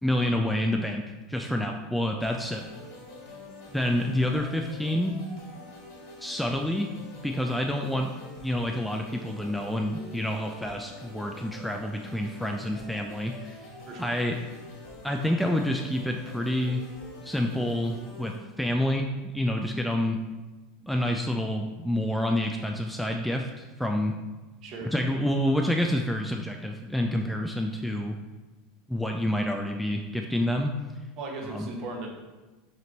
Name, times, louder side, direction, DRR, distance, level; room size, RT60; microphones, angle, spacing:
voice 1, 0.0-1.0 1.3-2.6 3.7-5.2 6.2-8.1 8.4-13.6 14.0-14.4 15.0-16.8 17.2-20.2 20.8-24.1 24.9-28.2 28.9-30.7 31.4-31.7, left 1 dB, 5° left, 3 dB, 0.4 m, -28 dB
sound 1, 2.2-18.4, left 1 dB, 55° left, 2.0 m, -46 dB
voice 2, 24.6-24.9 31.2-32.1, right 2 dB, 45° right, 0 dB, 1.3 m, -37 dB
5.6 x 4.4 x 4.0 m, 1.2 s
figure-of-eight pair, 75°, 0 cm